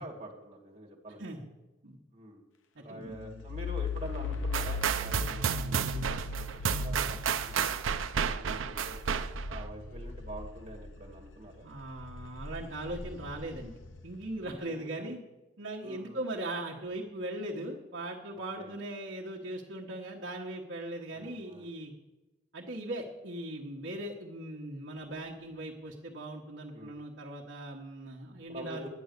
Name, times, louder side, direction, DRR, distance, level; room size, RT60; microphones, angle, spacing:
voice 1, 0.0-1.4 2.1-2.4 2.8-7.8 8.4-11.6 14.4-15.1 15.8-16.2 18.6-18.7 21.1-21.7 26.7-27.0 28.5-28.9, right 1 dB, 35° right, -2 dB, 2.3 m, -46 dB
voice 2, 2.7-3.4 8.5-8.7 11.6-13.7 14.0-15.2 15.6-21.9 22.5-28.9, right 1 dB, 70° right, -3 dB, 1.3 m, -39 dB
sound 1, 3.1-11.3 11.7-14.3, left 3 dB, 80° left, 0.8 m, -39 dB
sound 2, 4.5-9.7, right 7 dB, 85° right, 0.5 m, -31 dB
10.5 x 9.3 x 6.6 m, 1.1 s
head